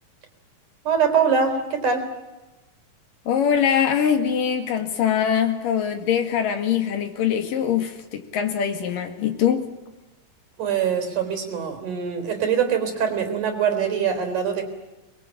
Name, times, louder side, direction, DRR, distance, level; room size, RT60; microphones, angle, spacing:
voice 1, 0.9-2.1 10.6-14.6, right 7 dB, 60° right, 6 dB, 5.2 m, -23 dB
voice 2, 3.3-9.7, left 8 dB, 70° left, 6 dB, 3.8 m, -23 dB
23.0 x 22.0 x 9.1 m, 1.1 s
omnidirectional pair, 4.0 m